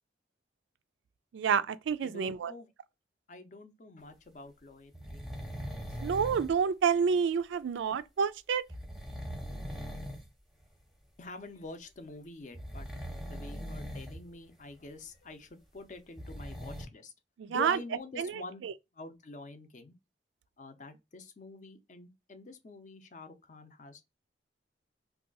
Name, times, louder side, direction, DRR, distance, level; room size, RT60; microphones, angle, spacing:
voice 1, 1.3-2.5 6.0-8.6 17.4-17.8 18.2-18.3 18.6-18.7, right 6 dB, 85° right, 0.3 m, -28 dB
voice 2, 2.0-2.7 3.3-6.0 11.2-12.9 13.2-17.1 17.5-18.6 18.9-19.9 20.6-24.1, left 2 dB, 40° left, 0.5 m, -47 dB
sound 1, 4.9-6.6 8.7-10.3 10.6-10.8 12.5-14.2 14.5-14.6 15.9-16.9, equal, ahead, 0.7 m, -40 dB
2.7 x 2.3 x 3.8 m
head